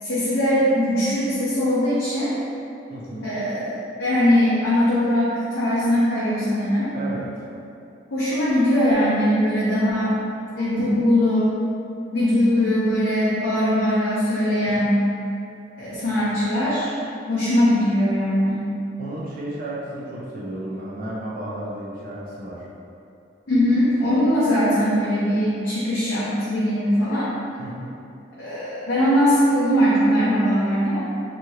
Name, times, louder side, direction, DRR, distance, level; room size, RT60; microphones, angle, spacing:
voice 1, 0.0-2.3 3.2-6.9 8.1-10.2 10.5-11.5 12.1-15.0 15.8-16.9 17.3-18.6 23.5-27.3 28.4-31.1, equal, 75° left, -11 dB, 0.6 m, -20 dB
voice 2, 2.9-3.3 6.9-7.4 14.6-14.8 19.0-22.7 27.6-27.9, right 1 dB, 50° right, -6 dB, 0.4 m, -33 dB
2.8 x 2.4 x 2.8 m, 2.7 s
head